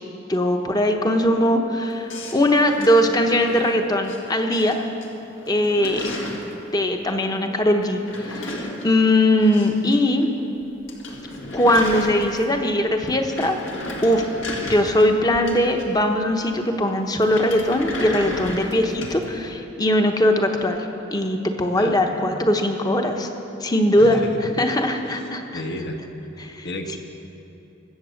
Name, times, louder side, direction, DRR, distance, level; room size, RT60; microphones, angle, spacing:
voice 1, 0.3-4.9 5.5-6.2 6.7-10.3 11.5-13.6 14.0-14.2 14.6-20.9 21.1-23.3 23.6-24.2 24.6-25.6 26.4-26.7, left 1 dB, 20° left, 4 dB, 1.0 m, -20 dB
sound 1, 2.1-4.2 4.5-5.1 5.3-6.5 7.8-10.0 10.2-10.3 10.6-10.7 10.9-12.6 13.0-16.1 17.2-19.2, left 1 dB, 75° left, 2.0 m, -34 dB
voice 2, 21.7-22.1 24.0-24.3 25.5-26.0 26.6-27.0, left 1 dB, 55° left, 4 dB, 1.3 m, -31 dB
23.0 x 8.0 x 6.5 m, 2.9 s
head